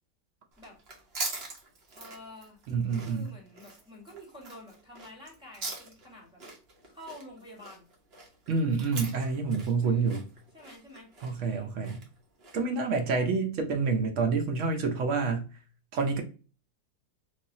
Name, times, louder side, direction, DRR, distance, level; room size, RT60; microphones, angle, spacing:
sound 1, 0.5-12.8, right 3 dB, 45° right, 0.9 m, -43 dB
voice 1, 1.9-2.6 2.9-6.4 6.8-7.9 9.8-10.1 10.5-11.1 11.4-11.7, left 1 dB, 5° right, 0.9 m, -49 dB
voice 2, 2.7-3.3 8.5-10.2 11.2-12.0 12.5-15.5 15.9-16.2, right 4 dB, 75° right, 0.6 m, -28 dB
3.2 x 2.6 x 2.6 m
omnidirectional pair, 1.9 m